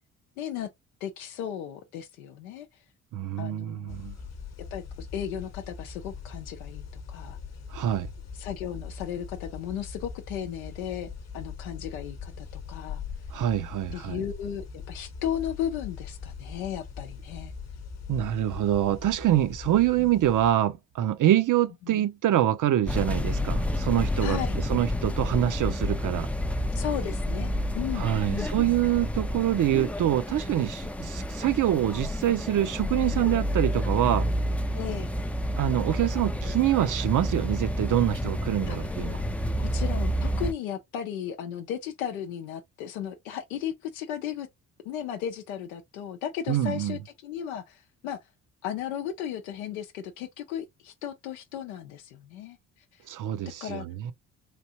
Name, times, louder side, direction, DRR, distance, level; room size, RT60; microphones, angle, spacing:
voice 1, 0.4-0.7 1.0-2.7 3.4-4.0 4.7-7.4 8.3-13.0 13.9-17.5 20.0-20.1 21.8-22.1 24.2-24.6 26.7-28.5 34.7-35.1 38.7-39.0 39.6-44.5 44.8-48.2 48.6-52.6 53.6-53.9, left 9 dB, 90° left, 0.6 m, -35 dB
voice 2, 3.1-4.1 7.7-8.1 13.3-14.2 18.1-24.4 24.7-26.3 27.9-34.3 35.6-39.2 46.5-47.0 53.1-54.1, right 12 dB, 50° right, 0.6 m, -25 dB
sound 1, 3.9-20.5, left 6 dB, 40° left, 1.0 m, -41 dB
sound 2, 22.9-40.5, equal, 5° left, 0.4 m, -29 dB
3.2 x 2.5 x 2.8 m
hypercardioid pair, 50°, 40 cm